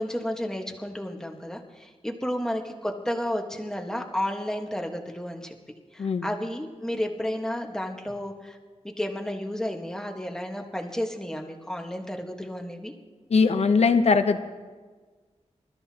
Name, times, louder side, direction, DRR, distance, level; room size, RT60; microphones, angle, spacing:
voice 1, 0.0-5.5 5.9-8.6 8.8-12.9, left 1 dB, 5° left, 2 dB, 1.4 m, -32 dB
voice 2, 13.3-14.4, left 4 dB, 60° left, 9 dB, 0.8 m, -20 dB
27.0 x 13.0 x 2.9 m, 1.4 s
wide cardioid pair, 125°, 12 cm